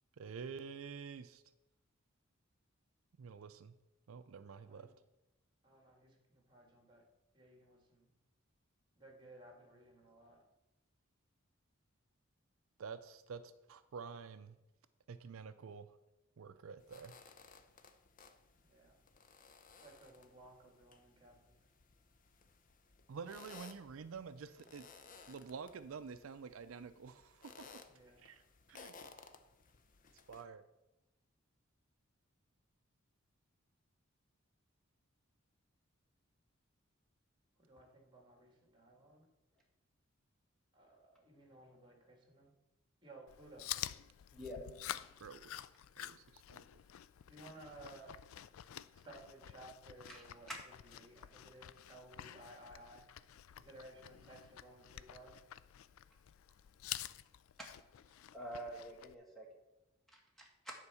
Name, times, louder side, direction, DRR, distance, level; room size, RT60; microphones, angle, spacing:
voice 1, 0.2-1.4 3.2-3.7 4.1-4.9 12.8-14.6 15.1-15.9 16.4-17.2 23.1-24.8 25.3-27.8 28.2-28.4 28.7-29.1 30.3-30.6 45.2-45.5 46.0-46.8, right 5 dB, 80° right, 11 dB, 0.5 m, -49 dB
voice 2, 5.6-7.0 7.3-8.1 9.0-10.4 18.6-19.0 19.8-21.5 27.9-28.2 37.6-39.3 40.7-42.5 43.0-43.7 47.3-48.1 48.9-50.5 50.8-53.1 53.5-55.3, right 2 dB, 25° right, 1 dB, 2.0 m, -58 dB
sound 1, 16.8-30.4, left 5 dB, 40° left, 0.6 m, -60 dB
Chewing mastication, 43.3-59.1, left 12 dB, 80° left, 0.3 m, -49 dB
voice 3, 50.1-50.6 58.3-59.5 60.1-60.7, equal, ahead, -2 dB, 1.7 m, -47 dB
9.7 x 4.6 x 6.9 m, 0.96 s
head